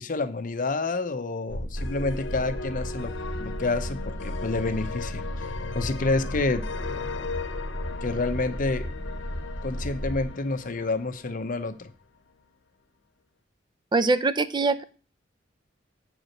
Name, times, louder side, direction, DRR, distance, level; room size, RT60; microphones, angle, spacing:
voice 1, 0.0-3.1 3.4-5.2 5.7-6.6 8.0-8.9 9.6-11.9, left 3 dB, 45° left, 9 dB, 0.8 m, -28 dB
sound 1, 1.5-10.3, equal, 65° right, 1.8 m, -35 dB
sound 2, 1.8-11.8, left 4 dB, 85° left, 0.8 m, -38 dB
voice 2, 13.9-14.8, right 3 dB, 25° right, 14 dB, 0.5 m, -23 dB
8.0 x 4.7 x 6.5 m, 0.37 s
head